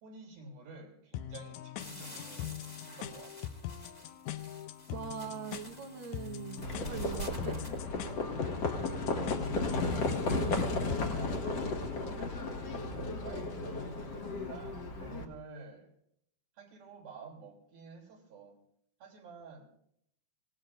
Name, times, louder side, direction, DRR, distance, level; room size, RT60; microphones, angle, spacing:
voice 1, 0.0-3.5 9.1-11.7 12.2-12.8 13.2-15.9 16.5-18.6 19.0-19.7, right 3 dB, 80° right, -1 dB, 5.0 m, -50 dB
sound 1, 1.1-11.1, left 11 dB, 75° left, 1.7 m, -43 dB
sound 2, 1.8-7.8, equal, 15° left, 1.6 m, -51 dB
voice 2, 4.9-7.6 8.1-8.4, right 7 dB, 60° right, 3 dB, 1.4 m, -42 dB
Livestock farm animals working animals, 6.6-15.2, left 3 dB, 50° left, 2.4 m, -34 dB
26.5 x 18.5 x 2.6 m, 0.72 s
omnidirectional pair, 4.0 m